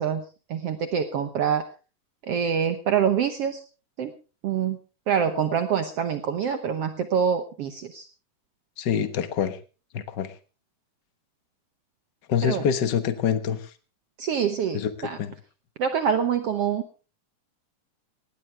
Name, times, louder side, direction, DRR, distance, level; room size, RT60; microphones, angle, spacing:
voice 1, 0.0-1.7 2.2-3.6 4.0-4.1 4.4-4.8 5.1-8.1 12.4-12.7 14.2-15.2 15.8-16.8, right 7 dB, 65° right, 8 dB, 1.6 m, -25 dB
voice 2, 8.8-9.6 9.9-10.4 12.3-13.7 14.7-15.3, left 8 dB, 70° left, 10 dB, 1.0 m, -26 dB
19.0 x 15.5 x 3.3 m, 0.34 s
omnidirectional pair, 3.8 m